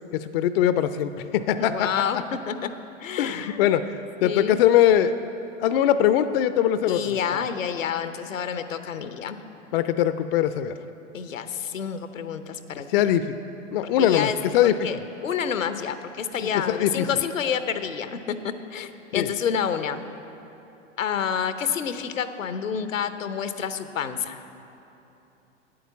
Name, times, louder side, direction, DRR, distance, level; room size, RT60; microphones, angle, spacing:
voice 1, 0.1-1.9 3.2-5.1 5.6-7.5 9.7-10.7 12.9-13.4 13.7-15.0 16.5-17.1 19.1-19.3, left 10 dB, 50° left, 12 dB, 0.5 m, -22 dB
voice 2, 1.6-2.7 3.0-3.7 4.2-4.6 6.9-9.4 11.1-12.9 14.0-14.4 14.6-20.0 21.0-24.4, left 7 dB, 85° left, 10 dB, 0.7 m, -29 dB
9.1 x 8.6 x 7.1 m, 3.0 s
hypercardioid pair, 105°, 38 cm